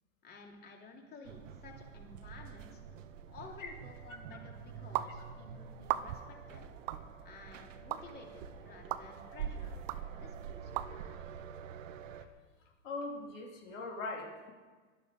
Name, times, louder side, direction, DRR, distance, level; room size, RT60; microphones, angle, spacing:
voice 1, 0.2-3.0 3.3-6.6 7.2-11.0, left 3 dB, 25° left, 1 dB, 3.0 m, -53 dB
sound 1, 1.2-12.2, right 7 dB, 85° right, 1.4 m, -46 dB
sound 2, 5.0-5.1 5.8-6.3 6.9-7.0 7.9-8.0 8.9-9.0 9.9-10.0 10.8-10.9, right 14 dB, 50° right, 0.8 m, -34 dB
voice 2, 12.8-14.5, left 3 dB, 85° left, 0 dB, 3.8 m, -41 dB
18.5 x 12.0 x 5.4 m, 1.4 s
supercardioid pair, 135°, 37 cm